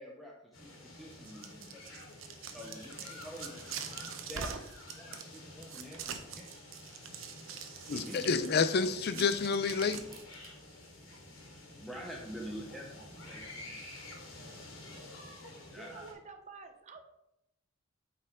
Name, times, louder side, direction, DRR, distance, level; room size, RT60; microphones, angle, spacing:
voice 1, 0.0-1.9 2.5-3.6 4.3-4.5 4.9-6.5 7.9-8.3 9.0-9.3 11.7-13.8 15.7-16.1, equal, ahead, -3 dB, 0.7 m, -47 dB
sound 1, 0.5-16.1, left 2 dB, 75° left, 2.2 m, -49 dB
sound 2, 1.1-10.5, right 7 dB, 75° right, 0.8 m, -44 dB
voice 2, 7.9-10.0, left 5 dB, 50° left, 12 dB, 0.4 m, -29 dB
voice 3, 15.7-17.0, right 4 dB, 35° right, 6 dB, 0.6 m, -49 dB
8.4 x 4.6 x 3.6 m, 0.84 s
head